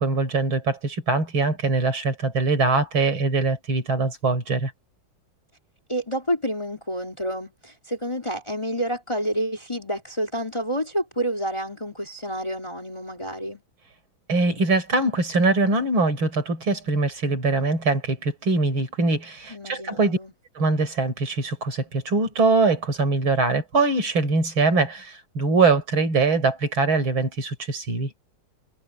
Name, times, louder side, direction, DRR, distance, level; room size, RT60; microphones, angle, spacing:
voice 1, 0.0-4.7 14.3-20.2 20.6-28.1, right 3 dB, 70° right, 5.6 m, -22 dB
voice 2, 5.9-13.6 19.5-20.3, equal, 15° left, 3.4 m, -29 dB
omnidirectional pair, 2.3 m